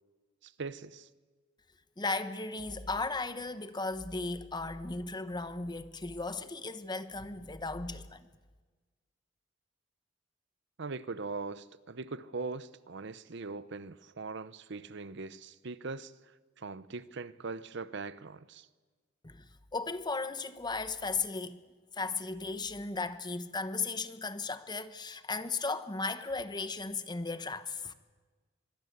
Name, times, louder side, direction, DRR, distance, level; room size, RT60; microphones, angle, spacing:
voice 1, 0.4-1.1 10.8-16.1 16.6-18.7, right 4 dB, 65° right, 0.8 m, -41 dB
voice 2, 2.0-8.3 19.2-21.6 21.9-27.9, left 3 dB, 20° left, 1.2 m, -36 dB
24.5 x 21.0 x 8.1 m
head